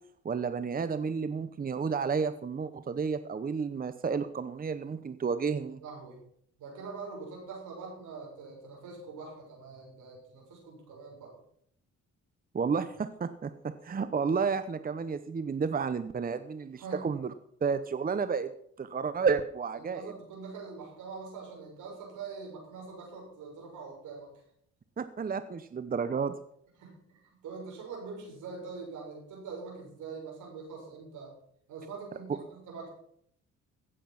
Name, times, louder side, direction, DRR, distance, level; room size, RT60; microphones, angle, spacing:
voice 1, 0.2-5.8 12.5-13.5 13.8-17.3 17.6-18.5 18.8-20.0 25.0-26.3, right 5 dB, 30° right, 12 dB, 0.8 m, -31 dB
voice 2, 5.8-6.2 6.6-11.4 16.8-17.1 19.7-24.4 26.8-31.3 31.7-32.9, right 4 dB, 80° right, -1 dB, 7.0 m, -44 dB
16.5 x 7.7 x 5.9 m, 0.67 s
cardioid pair, 90°, 30 cm